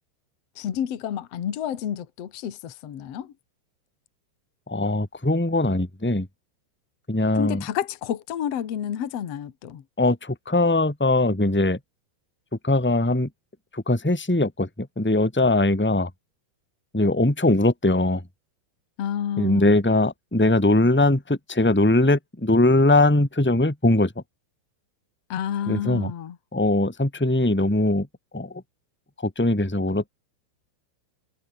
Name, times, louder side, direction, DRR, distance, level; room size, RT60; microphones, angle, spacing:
voice 1, 0.5-3.3 7.3-9.8 19.0-19.7 25.3-26.4, left 9 dB, 85° left, 1.4 m, -30 dB
voice 2, 4.7-6.3 7.1-7.6 10.0-11.8 12.6-13.3 13.7-16.1 16.9-18.2 19.4-24.1 25.7-26.1 26.5-28.1 28.3-28.6 29.2-30.1, left 2 dB, 10° left, 0.6 m, -21 dB
omnidirectional pair, 5.9 m